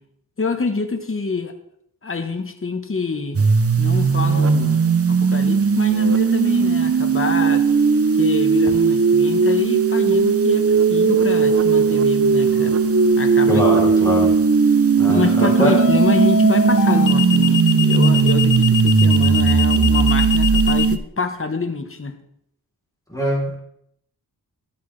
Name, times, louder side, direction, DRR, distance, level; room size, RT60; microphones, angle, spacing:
voice 1, 0.4-1.5 2.0-3.4 3.8-7.7 8.1-12.8 13.2-13.9 15.1-22.2, left 4 dB, 35° left, 6 dB, 1.0 m, -26 dB
sound 1, 3.3-21.0, right 5 dB, 35° right, 0.6 m, -17 dB
sound 2, 12.5-12.8 15.8-20.9, left 7 dB, 55° left, 0.5 m, -24 dB
voice 2, 13.5-14.3 15.0-15.7 23.1-23.6, equal, 10° left, -4 dB, 3.3 m, -21 dB
12.0 x 8.2 x 3.2 m, 0.73 s
wide cardioid pair, 75°, 39 cm